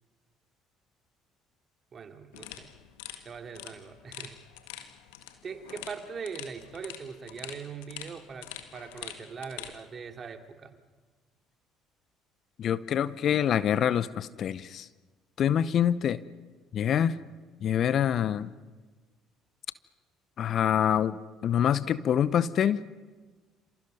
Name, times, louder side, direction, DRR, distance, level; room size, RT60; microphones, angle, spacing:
voice 1, 1.9-2.7 3.2-4.4 5.4-10.8, right 6 dB, 40° right, 5 dB, 2.8 m, -41 dB
sound 1, 2.3-9.8, left 12 dB, 75° left, 1.7 m, -45 dB
voice 2, 12.6-14.9 15.4-16.2 16.7-17.1 17.6-18.5 20.4-22.8, left 9 dB, 50° left, 17 dB, 0.8 m, -26 dB
29.5 x 27.5 x 5.5 m, 1.3 s
hypercardioid pair, 55°, 0 cm